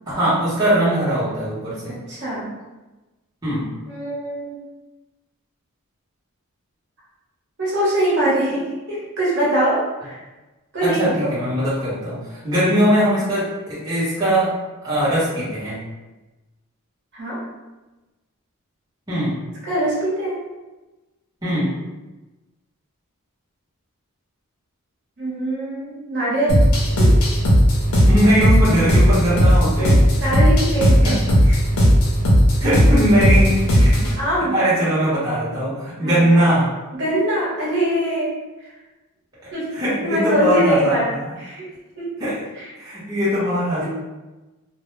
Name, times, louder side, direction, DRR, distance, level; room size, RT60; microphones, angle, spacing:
voice 1, 0.1-2.0 3.4-3.7 10.8-14.5 14.8-15.8 19.1-19.4 21.4-21.7 28.0-30.0 31.0-31.2 32.6-34.0 34.5-36.7 39.7-41.2 42.2-42.4 42.8-43.9, equal, 20° right, -11 dB, 0.8 m, -20 dB
voice 2, 1.9-2.5 3.9-4.6 7.6-8.6 8.9-10.2 10.7-11.3 17.1-17.4 19.6-20.4 25.2-26.6 27.0-27.3 29.8-29.9 30.2-31.2 31.5-31.6 32.6-33.0 33.4-33.5 34.2-34.5 36.0-36.5 36.9-38.3 39.5-41.1 41.4-41.6 42.0-42.1 42.6-42.7 43.8-43.9, right 1 dB, 55° right, -8 dB, 0.9 m, -23 dB
sound 1, 26.5-34.2, equal, 80° left, 0.6 m, -15 dB
2.1 x 2.1 x 3.1 m, 1.1 s
head